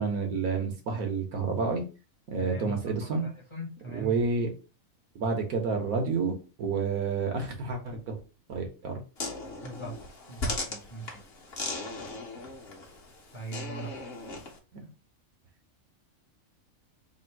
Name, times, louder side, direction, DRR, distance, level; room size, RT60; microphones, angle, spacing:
voice 1, 0.0-1.8 2.3-3.3 3.9-4.5 5.1-8.2 8.5-9.0 14.7-14.9, right 4 dB, 90° right, 4 dB, 1.5 m, -29 dB
voice 2, 2.4-2.7 3.0-4.2 9.6-10.0 10.3-11.2 13.3-13.9, right 2 dB, 25° left, 0 dB, 0.8 m, -40 dB
sound 1, 9.2-14.6, left 2 dB, 50° left, 1.1 m, -38 dB
3.6 x 2.5 x 4.5 m, 0.33 s
omnidirectional pair, 1.5 m